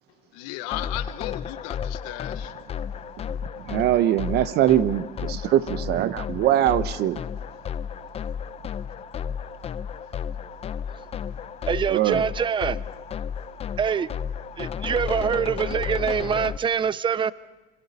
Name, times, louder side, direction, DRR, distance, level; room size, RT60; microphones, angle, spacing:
voice 1, 0.3-2.5, left 16 dB, 80° left, 12 dB, 1.2 m, -35 dB
sound 1, 0.7-16.6, left 7 dB, 30° left, 0.7 m, -33 dB
voice 2, 3.6-7.2 11.9-12.3, right 12 dB, 55° right, 14 dB, 0.9 m, -22 dB
voice 3, 11.7-12.8 13.8-14.1 14.6-17.3, right 7 dB, 25° right, 18 dB, 0.6 m, -24 dB
26.5 x 23.5 x 4.2 m, 1.2 s
supercardioid pair, 110°, 20 cm